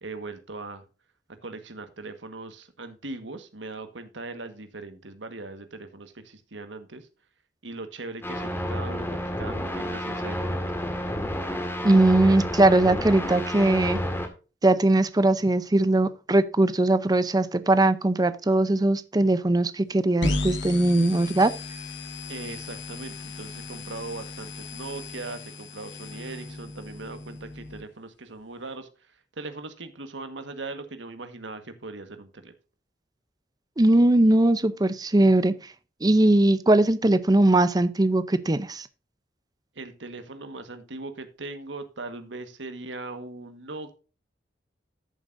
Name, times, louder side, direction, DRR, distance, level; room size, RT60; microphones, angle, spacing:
voice 1, 0.0-0.8 1.4-7.1 7.6-10.6 22.3-32.5 39.7-44.0, right 3 dB, 85° right, 1.5 m, -39 dB
sound 1, 8.2-14.3, equal, 15° left, 1.8 m, -30 dB
voice 2, 11.8-14.0 14.6-21.5 33.8-35.5 36.0-38.9, right 2 dB, 20° right, 0.6 m, -20 dB
sound 2, 20.2-27.8, left 2 dB, 80° left, 2.0 m, -35 dB
13.5 x 7.4 x 2.6 m
head